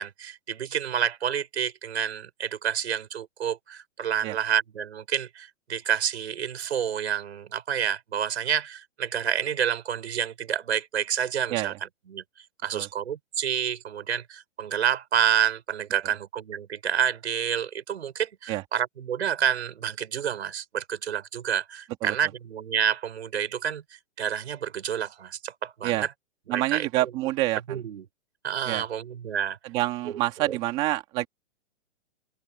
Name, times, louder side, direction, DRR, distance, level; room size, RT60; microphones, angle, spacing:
voice 1, 0.0-11.7 12.1-12.2 12.6-23.8 24.2-26.1 26.5-27.1 27.7-28.1 28.4-29.6 30.1-30.2 30.5-30.6, right 8 dB, 70° right, 5.2 m, -29 dB
voice 2, 26.5-27.6 28.7-28.8 29.7-31.3, right 17 dB, 15° right, 2.0 m, -27 dB
hypercardioid pair, 175°, 34 cm